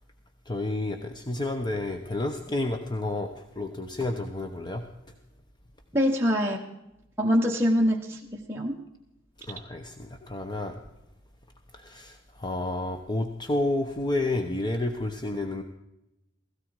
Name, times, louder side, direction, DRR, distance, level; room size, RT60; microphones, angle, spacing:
voice 1, 0.5-4.8 9.5-10.8 11.8-15.6, left 2 dB, 25° left, 5 dB, 1.0 m, -30 dB
voice 2, 5.9-6.6 7.2-8.8, equal, 15° right, -1 dB, 1.1 m, -24 dB
17.0 x 16.0 x 4.8 m, 0.90 s
head